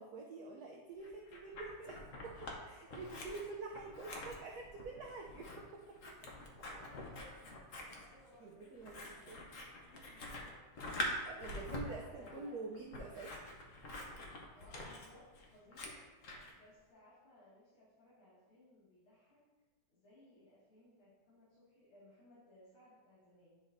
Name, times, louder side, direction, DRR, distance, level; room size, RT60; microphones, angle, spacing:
voice 1, 0.0-6.0 8.4-9.4 11.3-13.3, right 3 dB, 85° right, -1 dB, 0.8 m, -47 dB
Scissors, 1.0-2.6 2.9-16.5, left 1 dB, 55° left, 0.9 m, -46 dB
voice 2, 5.9-6.3 6.8-10.9 11.7-12.8 14.5-16.0 16.5-19.4 19.9-23.6, left 1 dB, 70° left, -12 dB, 2.9 m, -63 dB
9.4 x 5.1 x 2.6 m, 1.2 s
omnidirectional pair, 2.4 m